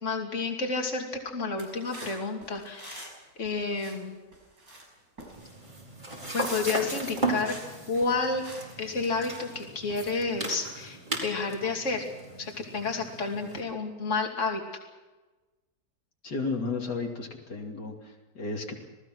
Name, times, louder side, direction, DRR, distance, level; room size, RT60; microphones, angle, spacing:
voice 1, 0.0-3.1 3.4-4.2 6.3-7.6 7.9-8.4 8.8-12.1 12.4-14.6, left 4 dB, 45° left, 2 dB, 3.0 m, -30 dB
sound 1, 1.6-3.2 3.4-4.0 4.3-4.9 5.2-5.8 6.1-6.7 7.0-9.5 9.9-10.2, right 1 dB, 60° right, 6.5 m, -48 dB
sound 2, 5.3-13.6, right 2 dB, 25° right, 4.6 m, -36 dB
voice 2, 16.2-18.8, left 3 dB, 75° left, 1 dB, 3.2 m, -33 dB
27.0 x 18.5 x 6.2 m, 1.2 s
omnidirectional pair, 1.8 m